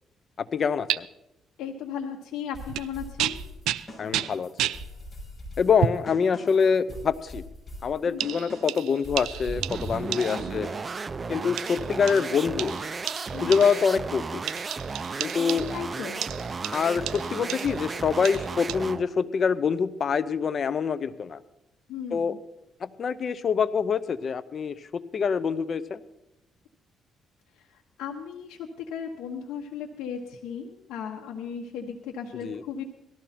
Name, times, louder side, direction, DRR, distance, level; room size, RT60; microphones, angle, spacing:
voice 1, 0.4-1.1 4.0-4.7 5.6-7.4 7.8-10.7 11.3-12.8 13.4-14.4 15.2-15.7 16.7-21.4 22.1-22.3 22.8-26.0 32.4-32.6, left 6 dB, 50° left, 14 dB, 0.8 m, -25 dB
sound 1, 0.9-1.0 2.7-2.9 3.2-4.9 5.8-6.1 6.9-7.0 8.2-10.6 11.6-14.0 14.5-15.9 16.2-17.8 18.3-18.8, right 12 dB, 90° right, 0.4 m, -32 dB
voice 2, 1.6-3.4 8.1-8.4 10.3-10.5 13.3-13.6 15.4-16.2 21.9-22.4 27.6-32.8, left 7 dB, 85° left, -1 dB, 1.3 m, -36 dB
sound 2, 2.5-11.0, left 1 dB, 20° left, 6.6 m, -43 dB
sound 3, 9.4-19.1, right 4 dB, 30° right, 0.6 m, -34 dB
18.5 x 13.5 x 4.4 m, 0.91 s
cardioid pair, 90°, 0 cm